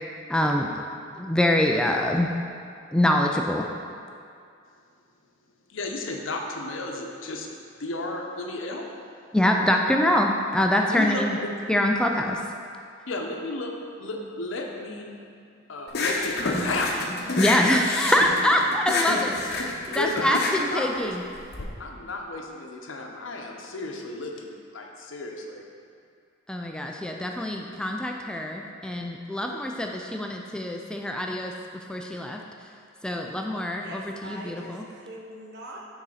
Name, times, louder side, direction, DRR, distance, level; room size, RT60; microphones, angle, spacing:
voice 1, 0.3-0.8 1.2-2.3 2.9-3.7 9.3-11.4 11.7-12.4 17.4-21.2 26.5-32.4 33.0-34.8, left 1 dB, 5° left, 1 dB, 0.3 m, -25 dB
voice 2, 5.7-7.5 7.8-8.9 10.9-11.5 13.1-15.1 15.7-17.0 17.2-17.3 19.9-21.1 21.8-25.6, left 2 dB, 80° left, 1 dB, 0.8 m, -33 dB
sound 1, 15.9-21.6, left 3 dB, 55° left, 0.8 m, -28 dB
voice 3, 33.8-35.8, right 1 dB, 60° right, -2 dB, 1.0 m, -42 dB
6.3 x 4.0 x 5.6 m, 2.3 s
head